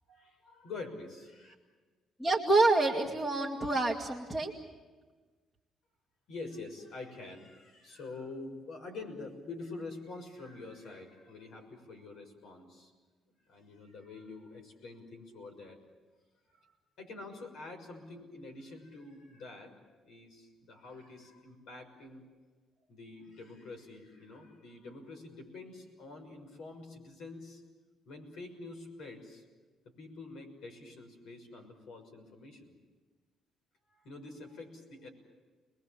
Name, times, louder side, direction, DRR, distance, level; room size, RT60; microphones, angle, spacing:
voice 1, 0.1-1.5 6.3-12.9 13.5-15.8 16.6-16.7 17.0-19.7 20.0-22.2 22.9-27.6 28.0-29.4 29.8-32.7 33.9-35.1, left 3 dB, 70° left, 4 dB, 6.2 m, -46 dB
voice 2, 2.2-4.5, right 2 dB, 5° left, 0 dB, 2.0 m, -27 dB
30.0 x 21.5 x 7.4 m, 1.3 s
cardioid pair, 165°, 0 cm